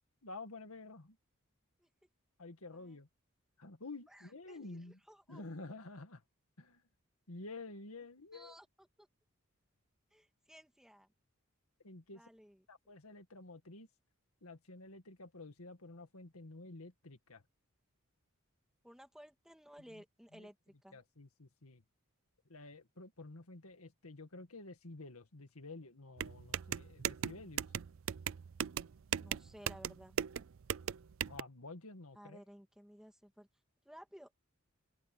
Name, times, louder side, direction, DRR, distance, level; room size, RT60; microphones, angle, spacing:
voice 1, 0.2-1.2 2.4-3.1 3.6-5.0 5.3-6.2 6.6-6.8 7.3-8.6 11.8-12.2 12.7-13.9 14.4-17.4 19.9-20.0 20.3-20.5 20.9-21.8 22.5-27.7 31.3-32.4, left 2 dB, 85° left, 2.0 m, -50 dB
voice 2, 4.1-5.4 8.3-8.7 9.0-9.1 10.1-11.1 12.1-12.6 18.8-21.0 29.2-30.2 32.1-33.5 33.8-34.3, equal, ahead, 2.1 m, -57 dB
sound 1, 26.2-31.4, right 9 dB, 65° right, 0.4 m, -38 dB
open air
head